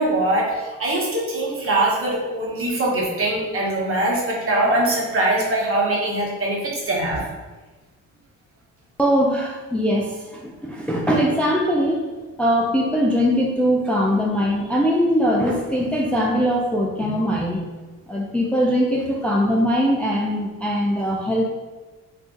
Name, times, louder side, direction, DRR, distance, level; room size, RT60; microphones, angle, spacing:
voice 1, 0.0-7.2, right 1 dB, 45° right, -3 dB, 1.0 m, -22 dB
voice 2, 9.0-12.0 12.4-17.6 18.1-21.5, equal, 5° left, -2 dB, 0.3 m, -21 dB
2.5 x 2.4 x 3.7 m, 1.2 s
cardioid pair, 90°, 30 cm